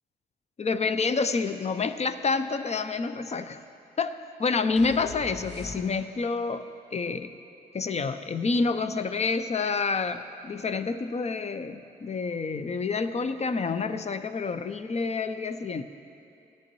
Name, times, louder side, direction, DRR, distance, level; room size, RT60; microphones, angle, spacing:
voice 1, 0.6-3.6 4.0-7.3 7.7-15.8, left 4 dB, 40° left, 11 dB, 0.6 m, -28 dB
sound 1, 4.8-6.3, left 4 dB, 70° left, 0.9 m, -42 dB
16.0 x 9.9 x 3.0 m, 2.6 s
supercardioid pair, 55°, 18 cm